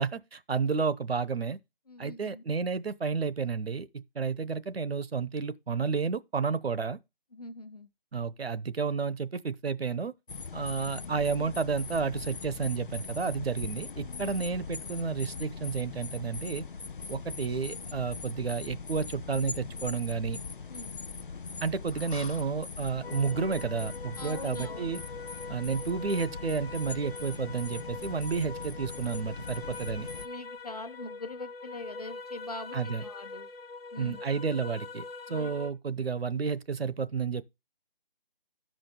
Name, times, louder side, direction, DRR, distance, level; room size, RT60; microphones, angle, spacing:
voice 1, 0.0-1.6 2.0-7.0 8.1-10.1 10.5-16.6 17.1-20.4 21.6-25.0 25.5-30.1 32.7-33.0 34.0-37.4, right 5 dB, 90° right, 0.9 m, -31 dB
voice 2, 1.9-2.4 7.3-7.9 20.7-20.9 24.2-24.9 30.2-33.5 33.9-34.2 35.3-35.5, left 2 dB, 40° left, 1.0 m, -42 dB
sound 1, 10.3-30.3, left 5 dB, 60° left, 0.5 m, -41 dB
sound 2, 23.0-35.7, left 3 dB, 85° left, 1.3 m, -43 dB
14.0 x 5.1 x 3.7 m
figure-of-eight pair, 180°, 29 cm